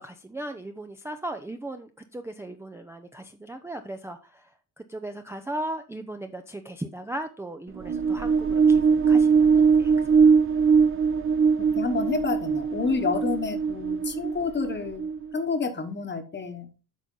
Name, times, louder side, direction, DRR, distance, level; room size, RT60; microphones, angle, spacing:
voice 1, 0.0-4.4 4.8-9.9, right 1 dB, 5° right, 5 dB, 0.5 m, -37 dB
sound 1, 7.7-15.4, right 5 dB, 35° right, 0.8 m, -21 dB
voice 2, 11.6-15.0 15.3-16.7, left 4 dB, 25° left, 8 dB, 1.2 m, -29 dB
8.3 x 5.7 x 3.8 m, 0.33 s
cardioid pair, 145°, 39 cm